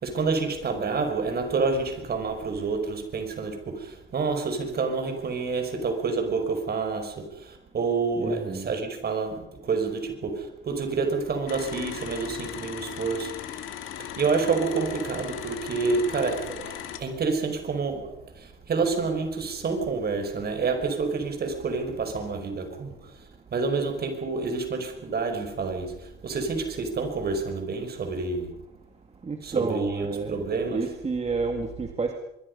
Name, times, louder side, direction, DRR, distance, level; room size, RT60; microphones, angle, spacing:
voice 1, 0.0-13.6 14.0-28.5 29.4-30.9, right 4 dB, 55° right, 6 dB, 5.5 m, -28 dB
voice 2, 8.2-8.7 29.2-30.4 30.7-32.1, right 4 dB, 35° right, 4 dB, 2.2 m, -30 dB
sound 1, 11.5-17.0, left 10 dB, 85° left, 2.8 m, -38 dB
24.0 x 23.0 x 5.5 m, 0.85 s
cardioid pair, 90°, 20 cm